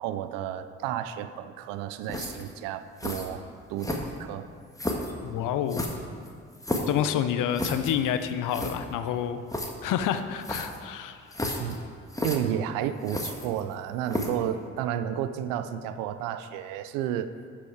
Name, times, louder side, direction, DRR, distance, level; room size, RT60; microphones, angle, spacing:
voice 1, 0.0-3.4 3.7-4.5 11.6-11.8 12.2-17.3, right 10 dB, 85° right, 11 dB, 0.5 m, -32 dB
sound 1, 2.1-2.5 3.0-3.3 3.8-4.3 4.8-5.1 5.7-7.0 7.5-7.9 8.2-8.3 8.5-8.8 9.5-9.7 10.4-10.8 11.3-11.8 12.1-12.4 13.0-13.7 14.1-14.4, left 1 dB, 10° left, 1.5 m, -32 dB
voice 2, 5.2-5.9 6.9-9.4 9.8-11.2, left 9 dB, 70° left, 10 dB, 0.7 m, -28 dB
11.0 x 5.9 x 4.7 m, 2.1 s
hypercardioid pair, 45°, 32 cm